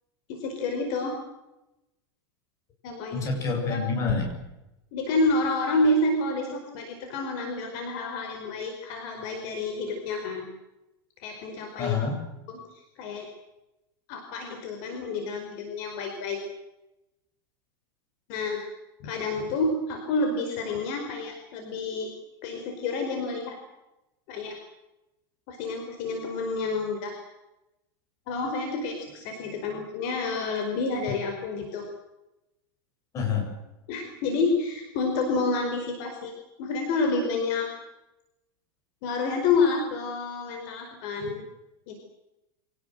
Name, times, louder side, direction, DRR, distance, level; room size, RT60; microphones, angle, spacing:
voice 1, 0.3-1.1 2.8-3.2 3.7-3.8 4.9-10.5 11.2-12.0 12.5-13.3 14.1-16.4 18.3-18.7 19.0-22.1 22.4-23.6 24.3-24.6 25.5-27.2 28.3-31.8 33.9-36.3 36.6-37.7 39.0-41.4 41.9-42.0, left 3 dB, 45° left, 3 dB, 5.0 m, -29 dB
voice 2, 3.1-4.3 11.8-12.2 33.1-33.5, left 5 dB, 25° left, 2 dB, 7.4 m, -27 dB
26.0 x 18.5 x 7.9 m, 0.95 s
supercardioid pair, 170°, 12 cm